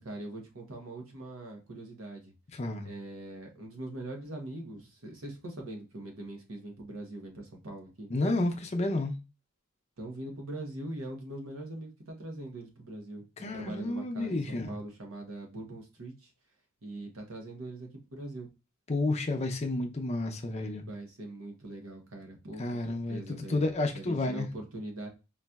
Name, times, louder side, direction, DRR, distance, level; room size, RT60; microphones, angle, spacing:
voice 1, 0.0-2.3 2.8-8.1 10.0-13.2 13.5-16.3 16.8-18.5 20.9-23.7 23.9-25.1, right 1 dB, 70° right, 0.9 m, -42 dB
voice 2, 2.5-2.9 8.1-9.1 13.4-14.7 18.9-20.8 22.6-24.5, left 2 dB, 30° left, 0.5 m, -31 dB
4.0 x 2.6 x 2.3 m
head